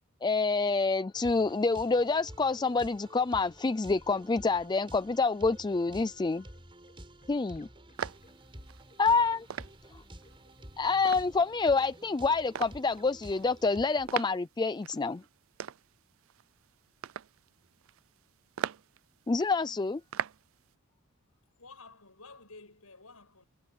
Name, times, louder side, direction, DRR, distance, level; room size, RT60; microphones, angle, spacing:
voice 1, 0.2-6.4 7.3-7.7 9.0-9.5 10.8-15.2 19.3-20.0, left 4 dB, 20° left, 0.4 m, -27 dB
sound 1, 1.1-13.9, right 1 dB, 25° right, 5.2 m, -51 dB
sound 2, 4.2-14.5, left 1 dB, 35° left, 7.3 m, -62 dB
sound 3, 8.0-20.7, right 8 dB, 65° right, 0.4 m, -41 dB
voice 2, 21.6-23.5, left 3 dB, 85° left, 7.7 m, -52 dB
head